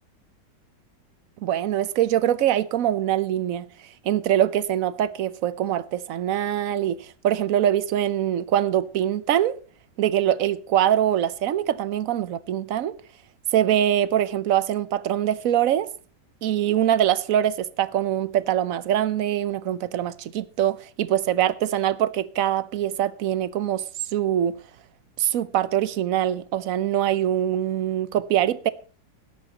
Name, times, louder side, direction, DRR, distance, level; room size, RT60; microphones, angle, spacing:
voice 1, 1.4-3.7 4.0-7.0 7.2-9.6 10.0-12.9 13.5-15.9 16.4-23.8 24.1-24.6 25.2-28.7, right 11 dB, 60° right, 1.0 m, -23 dB
17.0 x 12.0 x 2.9 m
omnidirectional pair, 1.9 m